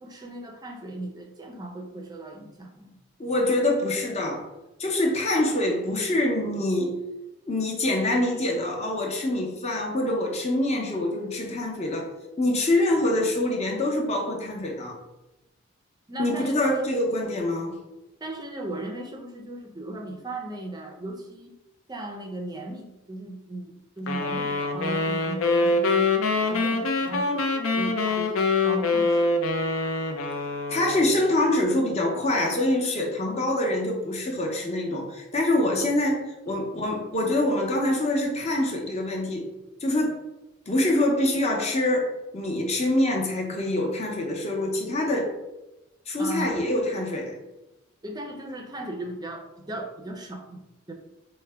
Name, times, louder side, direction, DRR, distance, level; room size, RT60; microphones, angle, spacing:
voice 1, 0.0-3.0 16.1-17.0 18.2-21.5 21.9-29.3 46.2-46.6 48.0-50.6 50.9-51.0, right 2 dB, 20° right, 3 dB, 0.4 m, -37 dB
voice 2, 3.2-4.5 4.8-7.0 7.5-12.1 12.4-15.0 16.2-17.8 30.7-39.5 39.8-40.2 40.7-45.3 46.1-47.4, left 1 dB, 30° left, 0 dB, 0.7 m, -25 dB
sound 1, 24.1-31.2, left 3 dB, 85° left, 0.5 m, -25 dB
4.5 x 2.1 x 3.3 m, 0.98 s
head